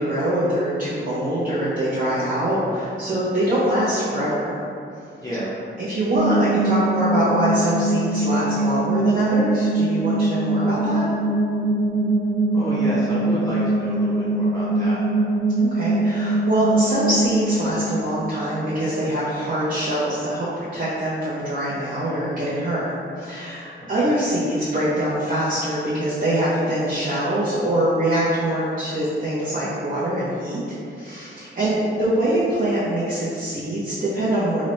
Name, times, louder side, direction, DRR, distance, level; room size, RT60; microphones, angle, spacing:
voice 1, 0.0-4.6 5.8-11.1 15.6-22.9 23.1-34.6, right 1 dB, 40° right, -9 dB, 0.6 m, -24 dB
voice 2, 5.2-5.5 12.5-15.1 23.8-24.1, equal, 15° left, -10 dB, 0.6 m, -30 dB
sound 1, 6.1-19.0, right 2 dB, 85° right, 0.4 m, -22 dB
3.8 x 2.1 x 3.0 m, 2.5 s
wide cardioid pair, 115°, 20 cm